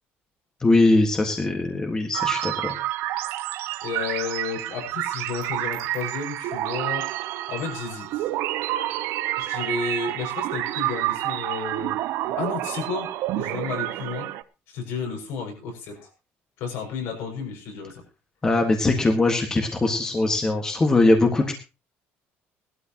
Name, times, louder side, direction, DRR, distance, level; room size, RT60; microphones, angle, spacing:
voice 1, 0.6-2.8 18.4-21.5, left 2 dB, 15° left, 3 dB, 1.7 m, -21 dB
sound 1, 2.1-14.4, right 15 dB, 70° right, 0.8 m, -29 dB
voice 2, 3.8-7.1 7.5-8.3 9.4-12.0 12.3-14.3 14.7-16.1 16.6-18.0, left 5 dB, 80° left, 1 dB, 6.4 m, -32 dB
19.0 x 12.5 x 3.0 m, 0.28 s
cardioid pair, 170°, 4 cm